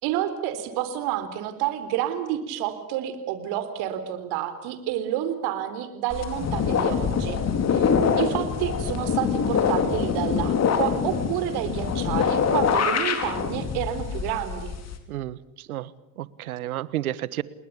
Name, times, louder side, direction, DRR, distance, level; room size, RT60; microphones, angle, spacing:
voice 1, 0.0-7.4 7.7-7.9 8.2-14.7, right 11 dB, 60° right, 10 dB, 4.0 m, -29 dB
sound 1, 6.1-15.0, left 6 dB, 40° left, 4.5 m, -24 dB
voice 2, 15.1-15.9 16.2-17.4, right 14 dB, 85° right, 19 dB, 1.3 m, -31 dB
30.0 x 20.5 x 8.6 m, 0.86 s
hypercardioid pair, 85°, 42 cm